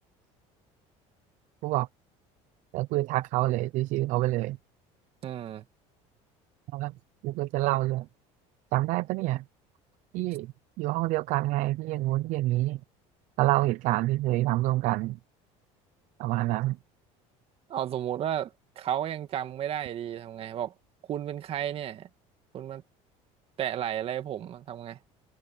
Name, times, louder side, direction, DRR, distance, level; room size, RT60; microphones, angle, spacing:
voice 1, 2.7-4.6 6.7-6.9 7.2-8.1 8.7-9.4 10.1-10.5 10.8-12.8 13.4-15.2 16.2-16.8, right 18 dB, 60° right, 0.6 m, -27 dB
voice 2, 5.2-5.6 17.7-20.7 21.1-22.1 22.5-22.8 23.6-25.0, right 10 dB, 40° right, 2.0 m, -33 dB
cardioid pair, 140°, 14 cm